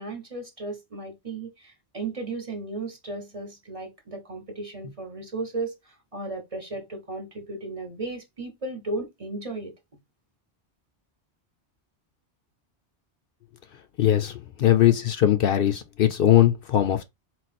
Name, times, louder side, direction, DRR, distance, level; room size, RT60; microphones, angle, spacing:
voice 1, 0.0-9.7, right 2 dB, 35° right, 0.9 m, -35 dB
voice 2, 14.0-17.0, left 12 dB, 65° left, 0.7 m, -20 dB
4.2 x 2.3 x 4.1 m
omnidirectional pair, 1.1 m